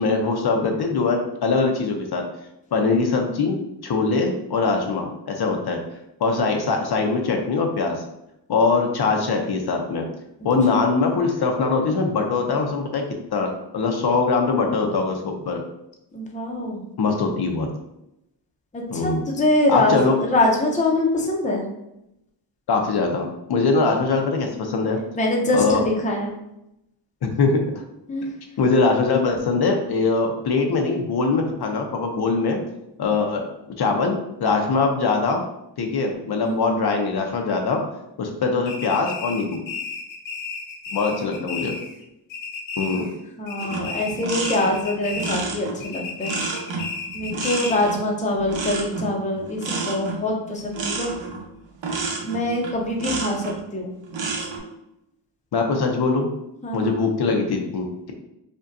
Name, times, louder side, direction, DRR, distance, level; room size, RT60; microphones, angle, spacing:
voice 1, 0.0-2.3 2.7-3.6 3.8-5.8 6.2-8.0 8.5-10.1 10.4-13.0 13.3-15.6 17.0-17.7 18.9-19.2 19.7-20.2 22.7-25.0 25.5-25.8 27.2-27.8 28.6-32.6 33.0-33.4 33.8-35.4 35.8-37.8 38.2-39.6 40.9-41.8 42.8-43.1 55.5-56.3 56.7-58.1, left 4 dB, 60° left, 3 dB, 0.6 m, -22 dB
voice 2, 16.1-16.8 18.7-21.6 25.2-26.3 28.1-28.3 36.4-36.7 41.1-41.7 43.0-43.1 43.4-46.3 47.1-51.1 52.2-53.9 56.6-57.0, left 1 dB, 15° left, 0 dB, 0.6 m, -24 dB
sound 1, 38.7-42.0 42.3-43.2 43.5-45.5 45.8-47.9, left 4 dB, 90° left, 0.9 m, -33 dB
sound 2, 43.6-53.6 54.0-54.6, right 4 dB, 80° right, 0.9 m, -30 dB
5.1 x 2.2 x 2.5 m, 0.85 s
wide cardioid pair, 130°, 44 cm